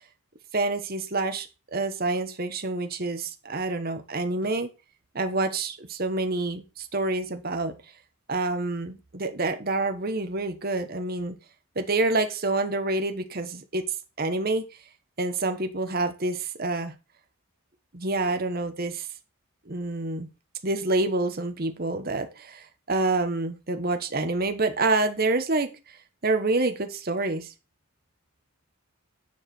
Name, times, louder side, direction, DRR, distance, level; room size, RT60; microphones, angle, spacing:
voice 1, 0.5-4.7 5.1-7.7 8.3-11.4 11.8-13.9 14.2-14.7 15.2-16.9 17.9-19.1 19.7-20.3 20.6-26.0 26.2-27.5, right 2 dB, 40° right, 1.1 m, -27 dB
9.7 x 4.9 x 6.0 m
head